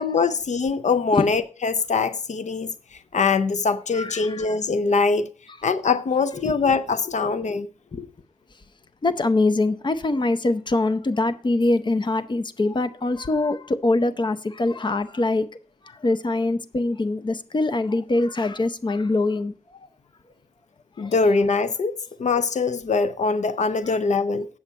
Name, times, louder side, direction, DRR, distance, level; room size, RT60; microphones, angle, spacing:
voice 1, 0.0-2.7 3.1-5.3 5.6-7.7 21.0-24.5, left 4 dB, 80° left, 0.5 m, -23 dB
voice 2, 3.9-4.6 6.3-6.6 7.9-8.1 9.0-15.5 15.9-19.5 21.0-21.1 23.9-24.0, left 2 dB, 40° left, 0.7 m, -23 dB
8.3 x 7.2 x 5.3 m
wide cardioid pair, 105°, 12 cm